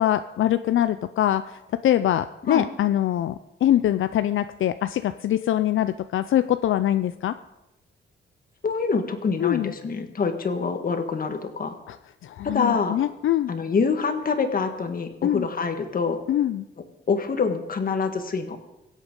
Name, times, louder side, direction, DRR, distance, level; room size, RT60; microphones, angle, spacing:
voice 1, 0.0-7.4 9.4-9.7 11.9-12.0 12.2-13.5 15.2-15.5 16.3-16.7, left 12 dB, 75° left, 11 dB, 0.5 m, -23 dB
voice 2, 8.6-11.7 12.4-13.0 13.5-16.2 17.1-18.6, left 5 dB, 45° left, 6 dB, 1.6 m, -25 dB
23.0 x 8.2 x 5.3 m, 0.95 s
wide cardioid pair, 140°, 21 cm